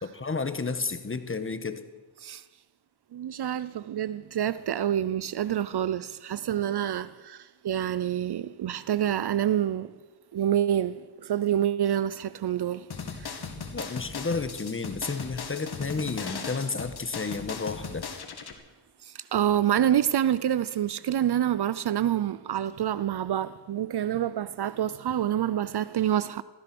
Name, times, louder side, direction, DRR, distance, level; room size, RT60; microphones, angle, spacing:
voice 1, 0.0-1.8 13.7-18.0, left 4 dB, 25° left, 1.4 m, -32 dB
voice 2, 3.1-7.4 7.6-9.9 10.3-11.0 11.3-12.9 13.2-13.3 19.3-26.4, right 10 dB, 55° right, 0.6 m, -27 dB
sound 1, 12.9-18.5, left 5 dB, 50° left, 2.2 m, -38 dB
16.0 x 14.0 x 6.1 m
cardioid pair, 75°, 49 cm